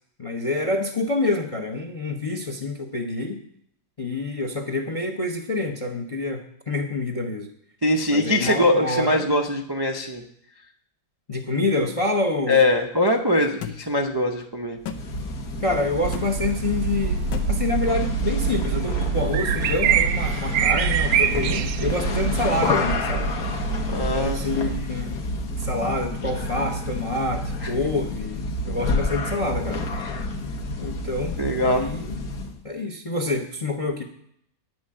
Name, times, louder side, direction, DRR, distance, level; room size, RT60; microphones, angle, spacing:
voice 1, 0.2-3.4 4.0-7.5 8.1-9.3 11.3-12.6 15.6-17.2 17.5-23.3 24.1-25.2 25.6-29.8 30.8-32.2 32.6-34.0, left 2 dB, 30° left, 5 dB, 0.6 m, -27 dB
voice 2, 7.8-10.2 12.5-14.8 23.9-24.4 27.6-27.7 30.0-30.1 31.4-31.9, left 1 dB, 30° right, 1 dB, 0.4 m, -22 dB
sound 1, 13.6-13.8 14.8-15.0 16.1-16.3 17.3-17.5, left 8 dB, 85° left, 1.6 m, -32 dB
sound 2, 14.8-32.6, left 2 dB, 60° left, 1.5 m, -29 dB
sound 3, 16.0-24.8, right 9 dB, 65° right, 1.0 m, -25 dB
9.3 x 6.2 x 8.6 m, 0.70 s
omnidirectional pair, 1.9 m